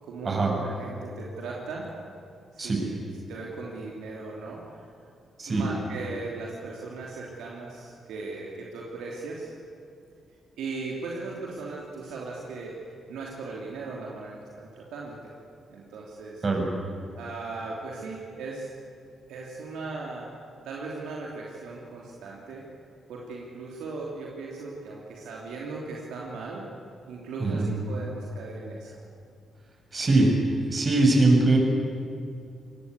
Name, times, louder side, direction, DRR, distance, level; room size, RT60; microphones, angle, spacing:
voice 1, 0.0-1.9 2.5-3.0 3.3-4.8 5.5-9.5 10.6-12.8 13.1-15.3 15.7-16.4 17.1-18.7 19.3-20.3 20.6-22.7 23.1-26.7 27.1-29.0, right 3 dB, 75° right, -3 dB, 3.1 m, -38 dB
voice 2, 29.9-30.3 30.6-31.6, right 2 dB, 40° right, 1 dB, 7.5 m, -21 dB
25.5 x 20.0 x 8.3 m, 2.5 s
hypercardioid pair, 45°, 0 cm